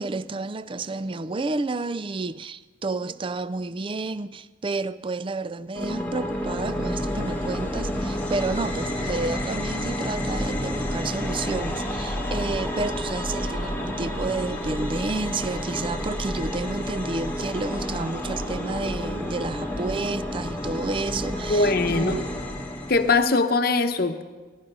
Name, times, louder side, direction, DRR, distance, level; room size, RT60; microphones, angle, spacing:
voice 1, 0.0-22.3, right 3 dB, 25° right, 0.4 m, -30 dB
sound 1, 5.7-23.2, equal, 10° left, 1.2 m, -30 dB
voice 2, 21.5-22.2 22.9-24.2, left 3 dB, 50° left, 0.9 m, -21 dB
18.0 x 12.0 x 5.5 m
head